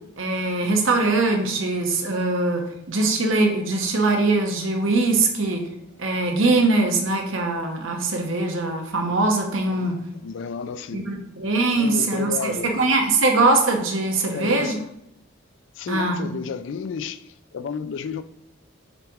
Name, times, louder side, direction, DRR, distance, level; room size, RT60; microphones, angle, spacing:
voice 1, 0.2-5.6 6.0-10.0 10.9-14.8 15.9-16.3, right 3 dB, 80° right, 1.1 m, -22 dB
voice 2, 9.7-11.1 11.7-12.7 14.3-14.8 15.8-18.2, left 6 dB, 65° left, 0.4 m, -32 dB
6.6 x 4.6 x 3.6 m
head